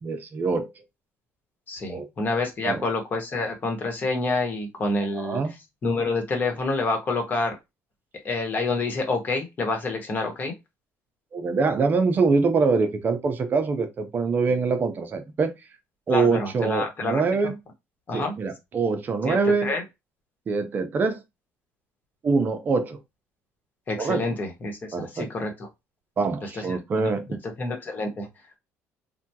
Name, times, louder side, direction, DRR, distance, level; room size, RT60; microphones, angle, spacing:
voice 1, 0.0-0.7 1.9-2.1 2.6-2.8 5.1-5.5 11.3-15.5 16.1-17.5 18.1-19.7 20.5-21.2 22.2-23.0 24.0-24.3 24.9-25.3 26.2-27.3, right 4 dB, 35° right, 0.6 m, -24 dB
voice 2, 1.7-5.4 5.8-7.6 8.2-10.5 16.1-17.2 18.1-18.3 19.2-19.8 23.9-25.5 26.4-26.8 27.4-28.3, left 3 dB, 35° left, 1.1 m, -28 dB
3.4 x 2.3 x 2.8 m
cardioid pair, 130°, 6 cm